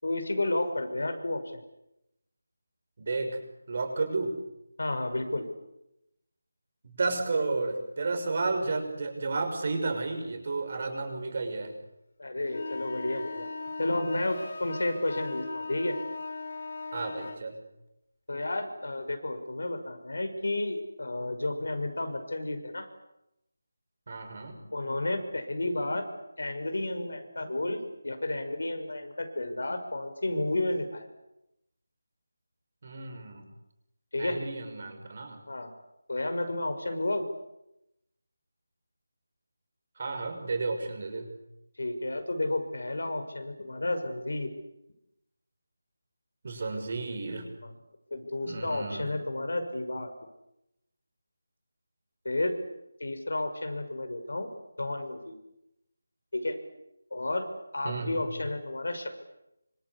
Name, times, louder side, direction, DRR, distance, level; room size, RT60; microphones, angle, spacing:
voice 1, 0.0-1.4 4.8-5.5 12.2-13.5 13.8-16.0 18.3-22.9 24.7-26.1 26.4-31.1 34.1-34.4 35.5-35.7 36.1-37.2 41.8-44.5 47.6-47.7 48.1-50.1 52.2-52.6 53.0-54.5 54.8-55.4 56.3-56.6 57.1-57.5 57.7-59.2, left 2 dB, 80° left, 7 dB, 6.0 m, -31 dB
voice 2, 3.0-3.4 3.7-4.3 6.8-11.7 16.9-17.6 24.1-24.6 32.8-33.4 34.2-35.4 40.0-41.3 46.4-47.5 48.4-49.1 57.8-58.2, right 3 dB, 40° right, 6 dB, 6.3 m, -32 dB
sound 1, 12.5-17.4, left 3 dB, 50° left, 4.3 m, -39 dB
26.5 x 26.0 x 8.5 m, 0.88 s
figure-of-eight pair, 175°, 0 cm